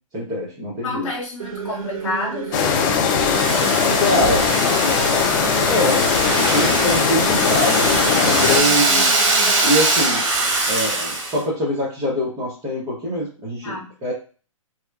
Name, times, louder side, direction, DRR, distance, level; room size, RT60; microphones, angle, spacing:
voice 1, 0.1-1.1 4.0-4.5 5.7-6.0 6.3-9.1 9.6-10.2 10.7-14.1, left 1 dB, 20° right, -7 dB, 0.9 m, -24 dB
voice 2, 0.8-2.6 13.6-13.9, left 2 dB, 70° left, -2 dB, 1.0 m, -28 dB
sound 1, 1.4-9.6, right 6 dB, 85° right, 0.5 m, -31 dB
sound 2, 2.5-8.6, left 6 dB, 35° left, 0.4 m, -19 dB
Domestic sounds home sounds, 3.2-11.4, right 2 dB, 60° right, 1.2 m, -22 dB
2.8 x 2.2 x 2.3 m, 0.38 s
hypercardioid pair, 130°, 17 cm